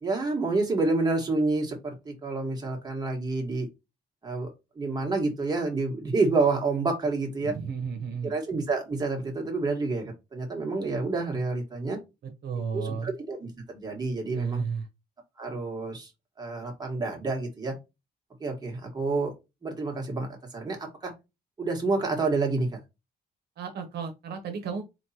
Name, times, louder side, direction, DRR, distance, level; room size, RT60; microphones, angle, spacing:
voice 1, 0.0-3.7 4.2-4.5 4.8-7.5 8.2-12.0 12.7-14.6 15.4-16.1 16.4-17.8 18.4-19.3 19.6-21.1 21.6-22.7, right 3 dB, 25° right, 1.4 m, -28 dB
voice 2, 7.4-8.3 12.4-13.1 14.3-14.9 23.6-24.8, right 6 dB, 70° right, 0.9 m, -33 dB
4.1 x 3.1 x 2.8 m
cardioid pair, 130°, 17 cm